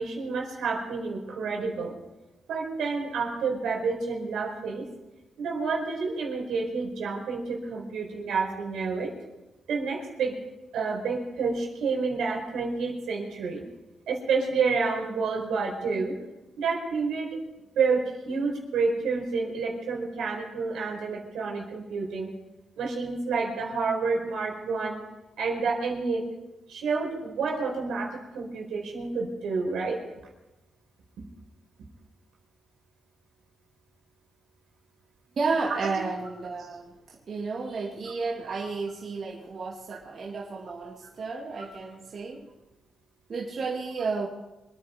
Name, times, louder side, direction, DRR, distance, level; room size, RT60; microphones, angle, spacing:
voice 1, 0.0-2.0 2.5-4.9 5.4-9.1 9.7-10.4 10.7-13.6 14.1-16.1 16.6-17.4 17.7-22.3 22.8-25.0 25.4-26.3 26.7-30.0 35.8-35.9 38.5-38.6, right 4 dB, 85° right, 1 dB, 4.6 m, -29 dB
voice 2, 35.4-42.4 43.3-44.3, right 4 dB, 55° right, -3 dB, 2.6 m, -32 dB
25.5 x 9.8 x 5.3 m, 1.0 s
cardioid pair, 75°, 0 cm